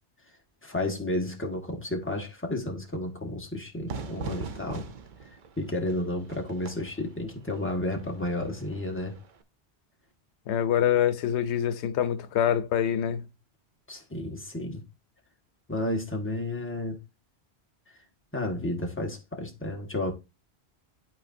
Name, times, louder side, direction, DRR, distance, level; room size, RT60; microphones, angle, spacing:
voice 1, 0.6-4.8 5.6-9.1 13.9-14.8 15.7-17.0 18.3-20.1, left 1 dB, 10° left, 1.4 m, -32 dB
Fire / Fireworks, 3.9-9.4, right 4 dB, 50° right, 0.8 m, -42 dB
voice 2, 10.5-13.2, left 10 dB, 90° left, 0.9 m, -25 dB
11.5 x 4.2 x 2.6 m
omnidirectional pair, 1.1 m